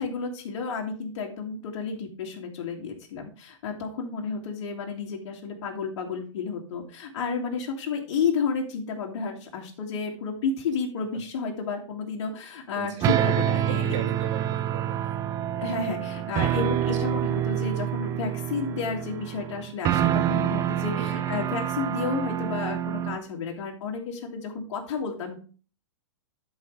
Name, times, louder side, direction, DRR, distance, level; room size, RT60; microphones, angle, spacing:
voice 1, 0.0-13.9 15.6-25.4, left 5 dB, 60° left, 0 dB, 2.2 m, -31 dB
voice 2, 12.7-13.1 13.5-15.2 17.1-17.3 20.9-21.2, right 7 dB, 70° right, 3 dB, 2.3 m, -38 dB
sound 1, 13.0-23.2, right 11 dB, 20° right, 0.4 m, -27 dB
12.5 x 4.9 x 3.2 m, 0.38 s
hypercardioid pair, 145°, 16 cm